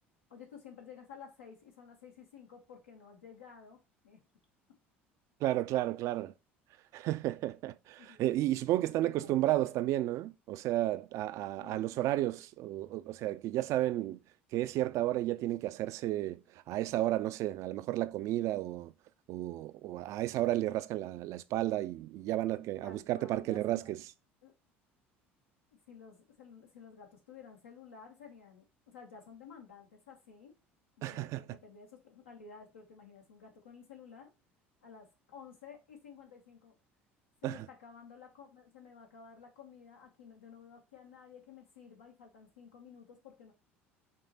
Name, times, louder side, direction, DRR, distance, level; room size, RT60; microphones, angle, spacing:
voice 1, 0.3-4.2 8.0-8.3 9.0-9.8 11.6-12.0 22.8-23.9 24.4-24.5 25.9-30.6 31.0-34.3 34.8-36.7 37.4-43.5, left 6 dB, 80° left, 1.2 m, -53 dB
voice 2, 5.4-6.3 6.9-14.2 14.5-16.4 16.7-18.9 19.3-24.0 31.0-31.4 37.4-37.7, right 15 dB, 50° right, 0.3 m, -32 dB
6.0 x 2.1 x 3.9 m
figure-of-eight pair, 65°, 7 cm